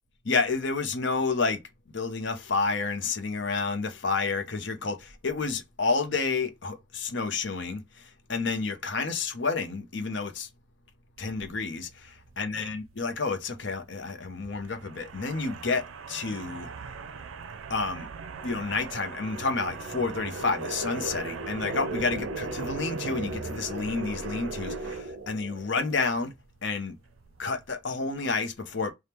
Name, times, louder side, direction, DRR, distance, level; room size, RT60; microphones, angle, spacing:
voice 1, 0.2-1.6 1.9-10.5 11.2-16.7 17.7-18.1 18.4-26.3 26.6-26.9 27.4-28.9, left 4 dB, 65° left, 0.8 m, -30 dB
sound 1, 11.2-27.7, right 6 dB, 90° right, 0.5 m, -44 dB
sound 2, 17.2-26.0, right 2 dB, 50° right, 0.8 m, -37 dB
3.5 x 2.3 x 4.3 m
head